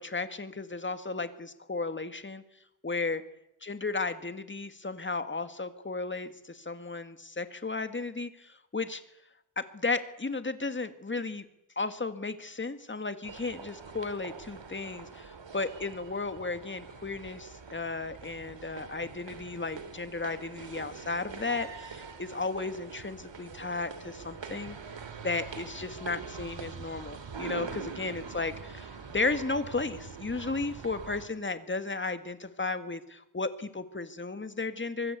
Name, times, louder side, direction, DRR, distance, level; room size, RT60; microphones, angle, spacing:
voice 1, 0.0-2.4 2.8-3.2 3.6-9.0 9.6-11.5 11.8-24.8 25.2-35.2, left 3 dB, 25° left, 10 dB, 1.9 m, -34 dB
sound 1, 13.2-31.3, right 5 dB, 75° right, 2.9 m, -44 dB
24.5 x 22.0 x 8.2 m, 0.81 s
wide cardioid pair, 145°, 45 cm